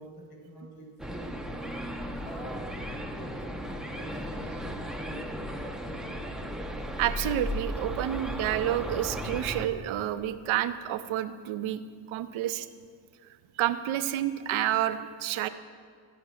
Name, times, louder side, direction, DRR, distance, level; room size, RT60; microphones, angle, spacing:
voice 1, 0.0-1.8 2.2-6.4, equal, 55° left, -1 dB, 4.6 m, -46 dB
sound 1, 1.0-9.7, equal, ahead, 1.0 m, -36 dB
voice 2, 7.0-11.8 12.1-12.7 13.6-15.5, right 12 dB, 85° right, 11 dB, 0.9 m, -29 dB
14.5 x 7.4 x 9.7 m, 2.1 s
cardioid pair, 110°, 46 cm